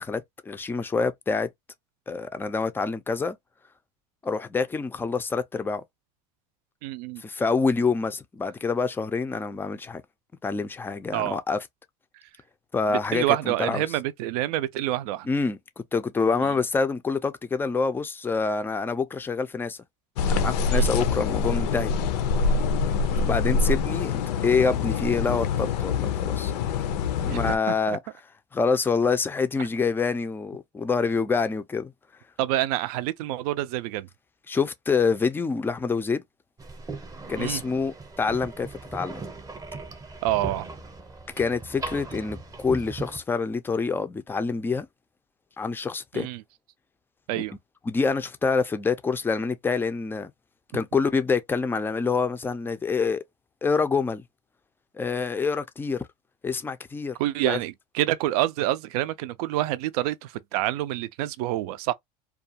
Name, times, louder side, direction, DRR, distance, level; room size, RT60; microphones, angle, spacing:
voice 1, 0.0-1.5 2.1-3.4 4.2-5.8 7.2-10.0 10.4-11.6 12.7-13.8 15.2-19.8 20.3-21.9 23.2-26.5 27.2-28.0 28.5-31.9 34.5-36.2 37.3-39.2 41.4-44.9 45.6-46.3 47.9-50.3 50.7-53.2 53.6-54.2 54.9-56.0 56.4-57.2 57.5-57.6, left 4 dB, 10° left, 0.4 m, -26 dB
voice 2, 6.8-7.2 11.1-11.4 12.9-15.3 16.4-16.5 20.7-21.0 23.1-23.3 27.3-28.0 32.4-34.1 37.4-37.6 40.2-40.7 46.1-46.4 47.3-47.5 57.2-61.9, right 14 dB, 70° right, 0.4 m, -27 dB
sound 1, 20.2-27.6, left 4 dB, 85° left, 0.5 m, -25 dB
sound 2, 36.6-43.2, right 3 dB, 15° right, 0.7 m, -38 dB
2.4 x 2.3 x 2.7 m
supercardioid pair, 110°, 20 cm